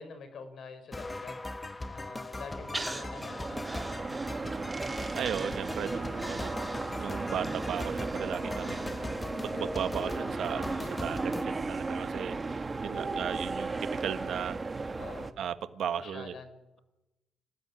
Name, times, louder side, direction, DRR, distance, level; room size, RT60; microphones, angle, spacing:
voice 1, 0.0-1.3 1.9-3.6 12.9-13.3 14.9-15.3 16.0-16.8, left 5 dB, 60° left, 10 dB, 4.9 m, -46 dB
sound 1, 0.9-11.5, left 2 dB, 20° left, 1.2 m, -40 dB
sound 2, 2.5-15.3, right 3 dB, 25° right, 1.7 m, -35 dB
Breathing, 2.7-4.7 5.2-9.4 9.7-9.8, right 1 dB, 10° right, 3.1 m, -43 dB
voice 2, 5.1-6.5 7.0-9.1 9.4-14.7 15.4-16.3, right 9 dB, 70° right, 11 dB, 1.4 m, -36 dB
25.0 x 16.5 x 10.0 m, 1.0 s
cardioid pair, 90°, 0 cm